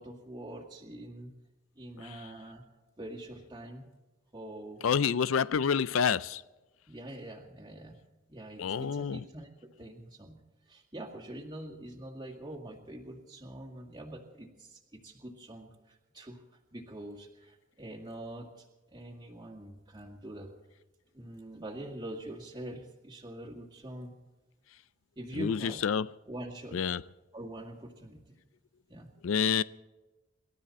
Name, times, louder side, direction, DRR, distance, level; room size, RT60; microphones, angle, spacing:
voice 1, 0.0-1.3 1.8-2.6 3.0-3.8 4.3-5.2 5.5-5.7 6.9-8.0 8.3-9.5 9.8-10.4 10.7-16.4 16.7-20.5 21.1-24.1 25.2-25.8 26.3-26.8 27.3-28.4 28.9-29.1, right 1 dB, 20° right, 2.0 m, -44 dB
voice 2, 4.8-6.4 8.6-9.2 25.4-26.1 26.7-27.0 29.2-29.6, left 7 dB, 80° left, 0.4 m, -28 dB
27.0 x 12.5 x 4.2 m
head